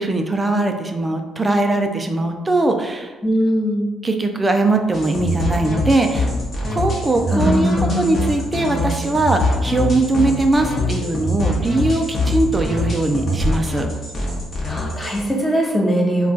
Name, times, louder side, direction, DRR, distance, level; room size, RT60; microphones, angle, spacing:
voice 1, 0.0-3.1 4.0-6.3 6.7-13.9, right 2 dB, 25° right, 5 dB, 0.4 m, -20 dB
voice 2, 3.2-3.9 7.3-8.1 14.6-16.3, equal, 15° left, -1 dB, 0.7 m, -20 dB
sound 1, 4.9-15.3, left 1 dB, 50° left, 0.8 m, -23 dB
2.3 x 2.3 x 3.8 m, 1.2 s
supercardioid pair, 70°, 0 cm